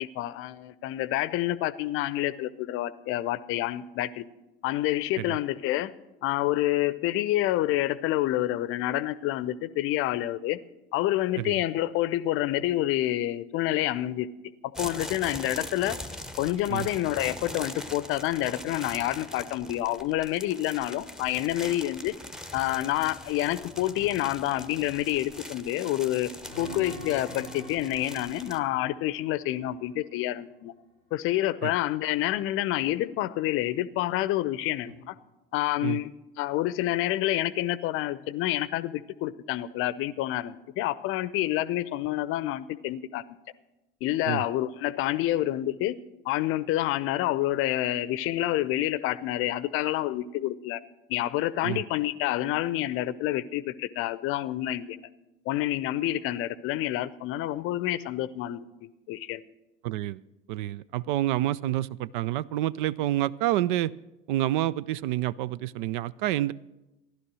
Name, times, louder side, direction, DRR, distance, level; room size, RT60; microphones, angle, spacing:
voice 1, 0.0-4.2 4.6-5.9 6.2-10.6 10.9-14.3 14.6-16.0 16.4-22.1 22.5-26.3 26.6-30.7 31.1-35.1 35.5-36.1 36.4-43.2 44.0-46.0 46.2-50.8 51.1-55.0 55.5-58.6 59.1-59.4, left 14 dB, 45° left, 17 dB, 0.7 m, -28 dB
sound 1, 14.7-28.6, left 1 dB, ahead, 0.9 m, -42 dB
sound 2, 26.4-30.2 34.8-34.9, equal, 80° right, 1.9 m, -44 dB
voice 2, 59.8-60.2 60.5-63.9 64.3-66.5, right 14 dB, 55° right, 21 dB, 0.4 m, -28 dB
15.5 x 11.5 x 6.2 m, 1.0 s
figure-of-eight pair, 65°, 29 cm